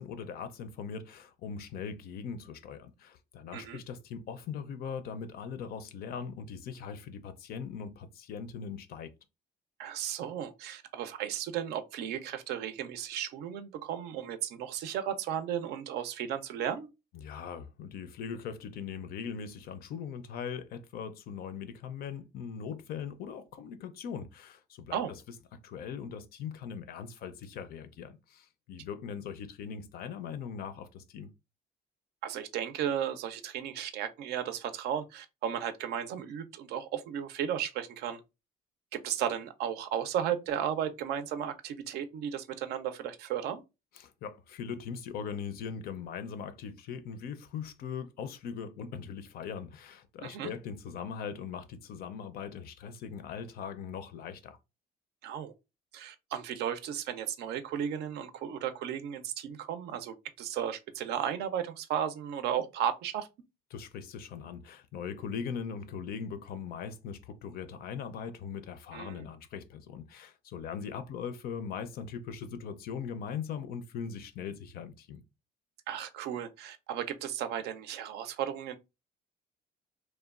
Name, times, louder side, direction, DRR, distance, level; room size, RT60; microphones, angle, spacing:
voice 1, 0.0-9.1 17.1-25.0 25.6-31.3 44.0-54.6 63.7-75.2, left 7 dB, 65° left, 0.4 m, -40 dB
voice 2, 9.8-16.9 24.9-25.1 32.2-38.2 38.9-43.6 50.2-50.5 55.2-55.5 55.9-63.3 68.9-69.3 75.9-78.8, right 9 dB, 75° right, 0.4 m, -34 dB
2.9 x 2.2 x 2.3 m
cardioid pair, 110°, 17 cm